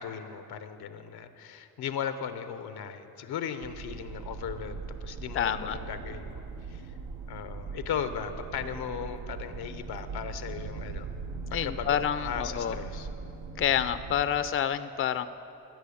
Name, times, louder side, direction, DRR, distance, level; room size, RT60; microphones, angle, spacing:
voice 1, 0.0-6.9 7.3-11.1 11.6-13.1, left 8 dB, 85° left, 10 dB, 0.9 m, -37 dB
sound 1, 3.6-14.5, right 4 dB, 75° right, 0.9 m, -40 dB
voice 2, 5.3-5.8 11.5-12.8 13.5-15.3, left 9 dB, 35° left, 13 dB, 0.5 m, -28 dB
15.5 x 6.3 x 8.5 m, 2.8 s
cardioid pair, 80°, 37 cm